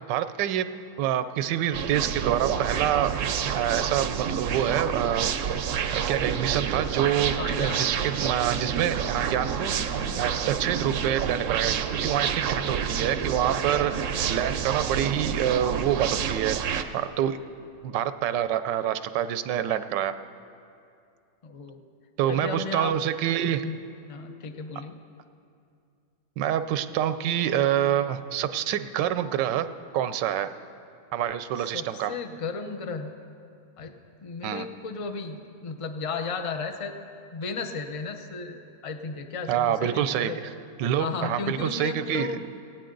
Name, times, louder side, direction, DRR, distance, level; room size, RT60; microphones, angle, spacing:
voice 1, 0.1-0.7 1.0-3.1 3.5-5.3 5.9-9.7 10.2-13.9 14.3-16.6 16.9-17.4 17.8-20.1 22.2-23.7 26.4-29.7 29.9-30.5 31.1-32.1 34.4-34.7 39.5-40.3 40.8-42.4, right 10 dB, 90° right, 12 dB, 1.3 m, -26 dB
sound 1, 1.7-16.8, right 7 dB, 60° right, 0.8 m, -28 dB
voice 2, 7.4-8.0 21.4-21.8 22.3-22.9 23.6-23.8 24.1-25.0 31.6-33.1 33.8-33.9 34.2-36.9 37.3-40.4 41.0-42.4, left 4 dB, 55° left, 6 dB, 0.3 m, -34 dB
18.0 x 16.0 x 3.9 m, 2.5 s
omnidirectional pair, 1.9 m